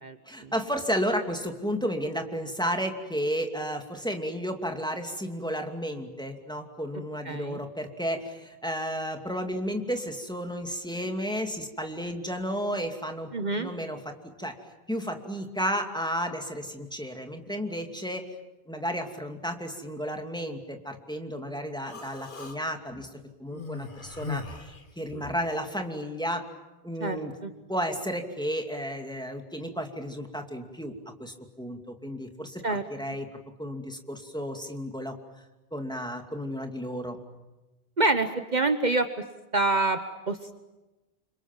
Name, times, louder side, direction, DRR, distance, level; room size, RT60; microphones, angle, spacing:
voice 1, 0.3-13.3 13.6-14.6 14.9-18.3 18.7-24.7 25.0-26.4 26.8-27.3 27.7-30.9 31.2-33.3 33.6-35.2 35.7-37.2, equal, 5° left, 4 dB, 2.6 m, -32 dB
voice 2, 7.2-7.6 13.3-13.7 27.0-27.2 27.4-27.5 32.6-32.8 38.0-39.1 39.5-40.0 40.3-40.5, right 3 dB, 45° right, 8 dB, 1.3 m, -26 dB
Human voice, 21.8-22.6 23.5-25.5, left 4 dB, 55° left, 1.7 m, -39 dB
29.0 x 26.0 x 7.4 m, 1.1 s
omnidirectional pair, 1.0 m